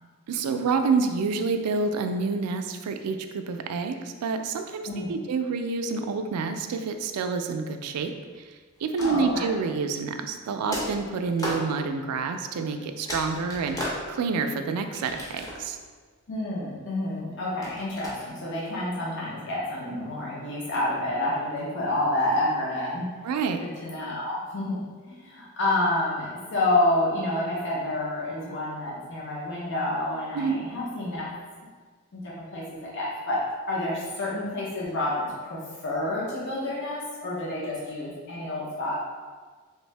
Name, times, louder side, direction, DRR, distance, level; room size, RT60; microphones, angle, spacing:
voice 1, 0.3-8.1 8.8-15.8 23.2-23.6 30.3-30.6, right 4 dB, 85° right, 6 dB, 0.3 m, -28 dB
sound 1, 8.8-9.6 10.7-11.7 12.6-12.7 13.1-14.4 14.9-15.8 17.6-18.1, equal, 15° left, 0.6 m, -35 dB
voice 2, 9.0-9.5 16.3-23.1 23.6-31.3 32.1-33.4 33.7-39.0, left 1 dB, 55° left, -6 dB, 0.7 m, -29 dB
3.4 x 2.6 x 3.2 m, 1.5 s
head